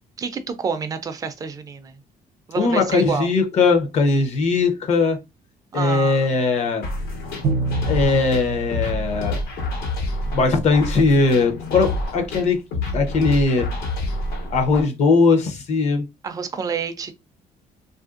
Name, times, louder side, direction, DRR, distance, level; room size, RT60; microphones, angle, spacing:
voice 1, 0.2-2.0 2.5-3.3 5.7-6.4 16.2-17.1, right 6 dB, 25° right, 0.4 m, -28 dB
voice 2, 2.6-5.2 5.7-6.9 7.9-9.4 10.3-12.6 12.9-13.7 14.5-16.0, left 4 dB, 50° left, 0.7 m, -19 dB
sound 1, 6.8-14.8, left 2 dB, 90° left, 1.3 m, -28 dB
Bowed string instrument, 7.4-10.2, right 4 dB, 65° right, 0.6 m, -28 dB
3.1 x 2.5 x 2.4 m
cardioid pair, 170°, 15 cm